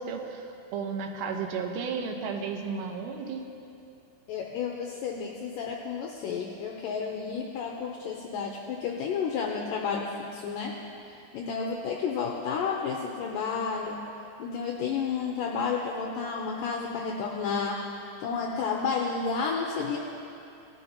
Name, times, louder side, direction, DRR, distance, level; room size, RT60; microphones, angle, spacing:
voice 1, 0.0-3.4, right 5 dB, 85° right, 3 dB, 3.1 m, -33 dB
voice 2, 4.3-10.7 11.3-14.0 14.4-20.0, left 5 dB, 85° left, 0 dB, 2.0 m, -31 dB
19.0 x 11.5 x 2.9 m, 2.7 s
omnidirectional pair, 4.8 m